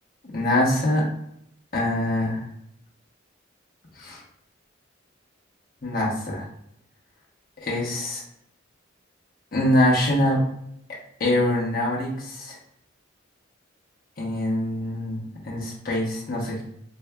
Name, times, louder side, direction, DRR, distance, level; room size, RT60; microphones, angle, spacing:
voice 1, 0.2-1.1 1.7-2.4 3.9-4.2 5.8-6.5 7.6-8.2 9.5-10.4 11.2-12.6 14.2-16.6, left 1 dB, 50° left, -3 dB, 1.0 m, -24 dB
4.5 x 2.5 x 2.2 m, 0.75 s
head